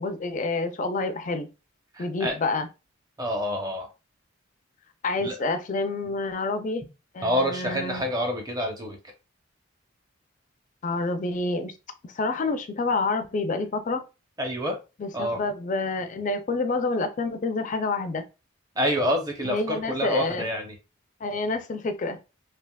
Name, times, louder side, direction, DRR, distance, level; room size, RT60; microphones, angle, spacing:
voice 1, 0.0-1.5 2.0-2.7 5.0-6.8 7.1-8.1 10.8-11.7 12.0-14.0 15.0-18.2 19.4-20.5 21.2-22.2, left 3 dB, 40° left, 0.4 m, -28 dB
voice 2, 1.9-2.3 3.2-3.9 5.2-5.3 7.2-9.0 14.4-14.8 15.1-15.4 18.8-20.7, equal, 20° right, 0.7 m, -27 dB
3.3 x 2.8 x 2.2 m
head